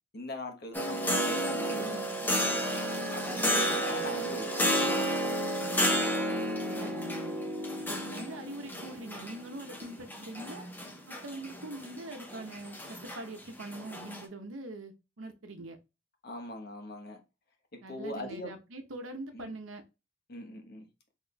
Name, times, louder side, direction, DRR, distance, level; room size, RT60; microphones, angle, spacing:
voice 1, 0.1-2.1 3.1-5.2 16.2-17.2 17.9-18.5 19.3-19.5 20.3-20.9, left 1 dB, 55° left, 1.1 m, -41 dB
sound 1, 0.7-14.2, equal, 10° left, 0.7 m, -32 dB
voice 2, 6.7-7.4 7.8-10.7 11.1-15.8 17.8-19.8, right 2 dB, 80° right, 0.8 m, -43 dB
4.0 x 3.5 x 2.2 m
head